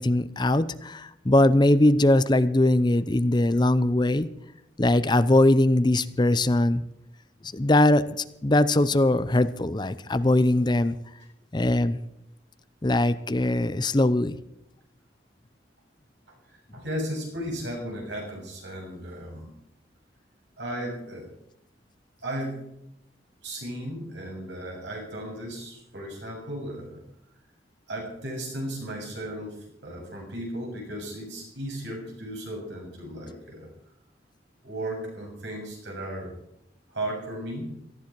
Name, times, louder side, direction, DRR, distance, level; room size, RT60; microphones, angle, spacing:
voice 1, 0.0-4.3 4.8-6.8 7.5-8.2 8.4-11.0 11.5-12.0 12.8-14.4, left 1 dB, 25° left, 14 dB, 0.6 m, -21 dB
voice 2, 16.3-19.5 20.6-21.3 22.2-22.7 23.4-27.0 27.9-33.7 34.6-36.3 36.9-37.8, right 1 dB, 80° right, -1 dB, 7.3 m, -35 dB
18.0 x 14.5 x 4.7 m, 0.80 s
head